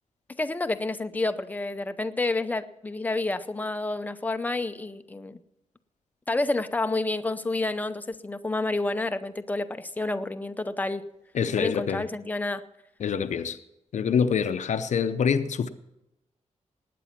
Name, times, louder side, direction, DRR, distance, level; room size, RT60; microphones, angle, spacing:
voice 1, 0.4-5.4 6.3-11.0 11.6-12.6, left 2 dB, 15° left, 0.6 m, -29 dB
voice 2, 11.3-12.1 13.0-13.6 13.9-15.7, left 7 dB, 70° left, 0.7 m, -25 dB
19.0 x 9.3 x 5.9 m
wide cardioid pair, 175°, 13 cm